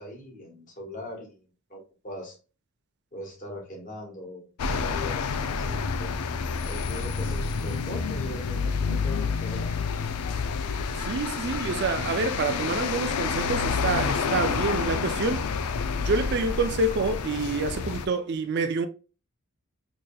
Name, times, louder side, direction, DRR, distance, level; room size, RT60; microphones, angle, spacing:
voice 1, 0.0-2.4 3.1-6.1 6.6-9.7, left 1 dB, 35° left, 1.3 m, -40 dB
sound 1, 4.6-18.1, left 5 dB, 90° left, 0.4 m, -29 dB
voice 2, 11.0-15.5 16.0-18.9, right 3 dB, 50° right, 0.4 m, -27 dB
4.9 x 2.8 x 2.2 m
head